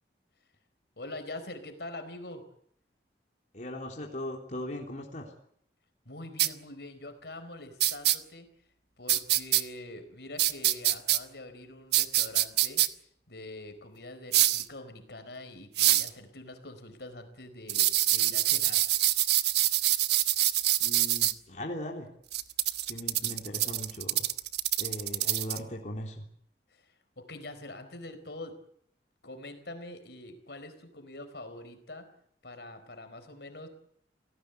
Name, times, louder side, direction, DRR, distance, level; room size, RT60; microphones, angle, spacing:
voice 1, 1.0-2.4 6.0-8.5 9.0-12.8 13.3-18.8 26.7-28.6 29.2-32.1 32.4-33.7, left 2 dB, 65° left, 8 dB, 4.5 m, -44 dB
voice 2, 3.5-5.3 20.8-22.1 22.8-24.2 24.8-26.2, left 1 dB, 45° left, 0 dB, 3.4 m, -39 dB
sound 1, 6.4-6.5 7.8-8.2 9.1-9.6 10.4-11.2 11.9-12.9 14.3-14.6 15.8-16.1 17.7-21.3 22.3-25.6, right 14 dB, 65° right, 1.2 m, -25 dB
28.5 x 18.0 x 8.1 m, 0.66 s
head